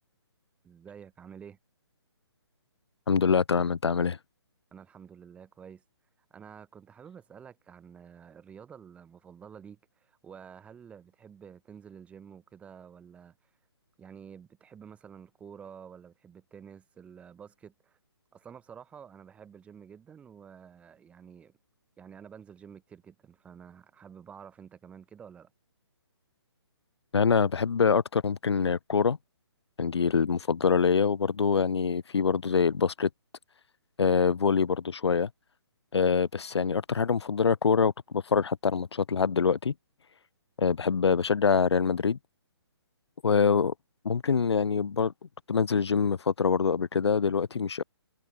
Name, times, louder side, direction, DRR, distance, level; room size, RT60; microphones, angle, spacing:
voice 1, 0.6-1.6 4.7-5.8 6.3-13.4 14.0-18.0 18.3-21.5 22.0-25.5, right 7 dB, 10° right, 5.3 m, -49 dB
voice 2, 3.1-4.2 27.1-29.2 29.8-33.1 34.0-35.3 35.9-39.7 40.6-42.2 43.2-43.7 44.0-45.1 45.5-47.8, left 6 dB, 75° left, 1.2 m, -25 dB
hypercardioid pair, 160°, 14 cm